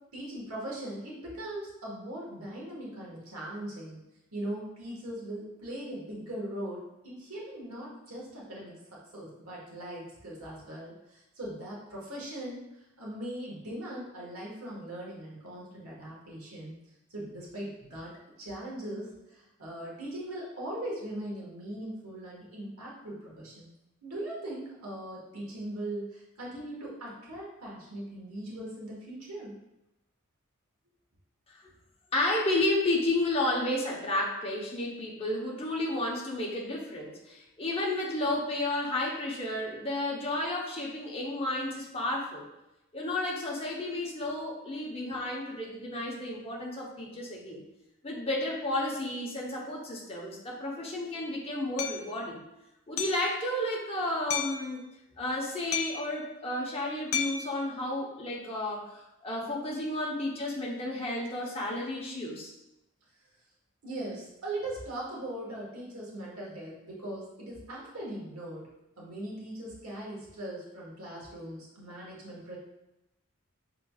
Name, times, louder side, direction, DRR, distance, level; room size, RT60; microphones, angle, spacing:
voice 1, 0.1-4.0 4.3-8.8 9.1-12.6 13.0-16.8 17.1-23.7 24.0-29.5 63.8-68.7 69.0-72.6, right 1 dB, 85° right, -4 dB, 1.5 m, -40 dB
voice 2, 32.1-42.4 42.9-47.6 48.0-52.4 52.9-54.8 55.2-62.5, left 1 dB, 25° left, -3 dB, 0.9 m, -32 dB
Hammer, 51.8-52.0 53.0-53.3 54.3-54.6 55.7-56.1 57.1-57.5, left 8 dB, 75° left, 0.4 m, -32 dB
5.8 x 3.7 x 2.4 m, 0.92 s
head